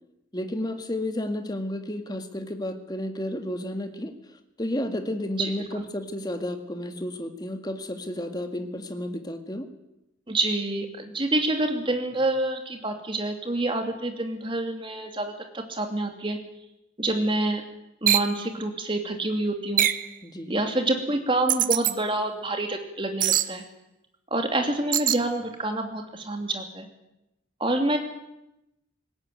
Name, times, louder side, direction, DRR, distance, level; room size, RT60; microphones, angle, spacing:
voice 1, 0.3-4.1 4.6-9.7 20.2-20.6, left 1 dB, 20° left, 6 dB, 1.9 m, -32 dB
voice 2, 10.3-16.4 17.0-17.6 18.0-19.8 20.5-23.6 24.3-26.9 27.6-28.0, right 2 dB, 25° right, 4 dB, 2.8 m, -27 dB
sound 1, 18.1-18.3 19.8-20.1 21.5-21.9 23.2-23.5 24.9-25.2, right 12 dB, 45° right, 0.8 m, -22 dB
19.5 x 17.5 x 9.4 m, 0.89 s
head